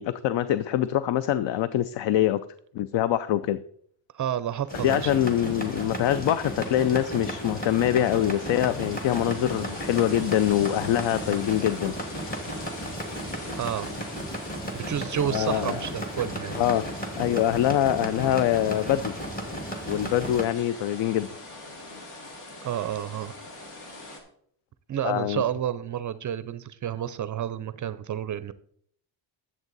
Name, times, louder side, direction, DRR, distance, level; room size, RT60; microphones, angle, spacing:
voice 1, 0.0-2.4 2.7-3.6 4.8-11.9 15.3-15.8 16.6-16.8 17.2-19.1 19.9-21.3 25.0-25.4, left 11 dB, 60° left, 15 dB, 0.5 m, -24 dB
voice 2, 4.1-5.1 13.5-13.9 14.7-16.6 22.6-23.3 24.9-28.5, right 10 dB, 40° right, 14 dB, 0.4 m, -30 dB
sound 1, 4.7-24.2, left 2 dB, 80° left, 2.6 m, -43 dB
sound 2, 4.7-20.4, equal, 15° left, 1.8 m, -34 dB
10.5 x 7.5 x 4.0 m, 0.64 s
cardioid pair, 125°, 49 cm